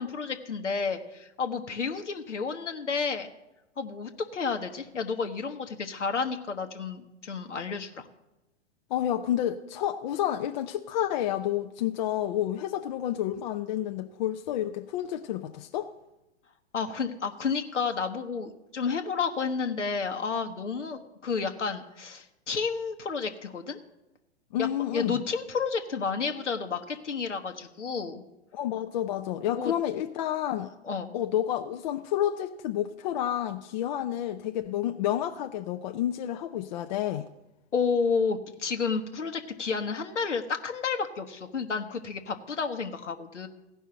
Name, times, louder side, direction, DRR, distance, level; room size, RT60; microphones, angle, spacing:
voice 1, 0.0-3.3 3.8-8.1 16.7-23.8 24.6-28.2 29.5-29.7 30.6-31.1 37.7-43.5, left 5 dB, 85° left, 1.1 m, -31 dB
voice 2, 8.9-15.9 24.5-25.2 28.5-30.7 31.1-37.3, left 11 dB, 40° left, 0.5 m, -30 dB
15.5 x 5.5 x 7.5 m
figure-of-eight pair, 115°, 35 cm